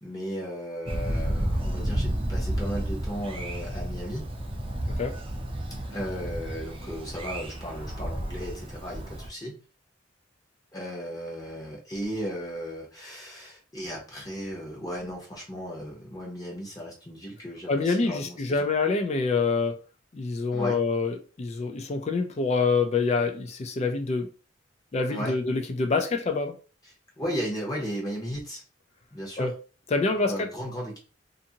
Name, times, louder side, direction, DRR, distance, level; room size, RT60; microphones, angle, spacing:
voice 1, 0.0-4.3 5.9-9.6 10.7-18.7 20.5-20.8 25.1-25.4 27.2-28.6 29.1-29.5 30.1-31.0, equal, 20° left, 0.8 m, -35 dB
Thunder, 0.9-9.3, right 1 dB, 30° right, 0.5 m, -31 dB
voice 2, 17.7-19.8 20.1-24.3 24.9-26.5 29.4-29.5 29.9-30.5, left 4 dB, 35° left, 0.4 m, -26 dB
2.6 x 2.5 x 2.7 m
head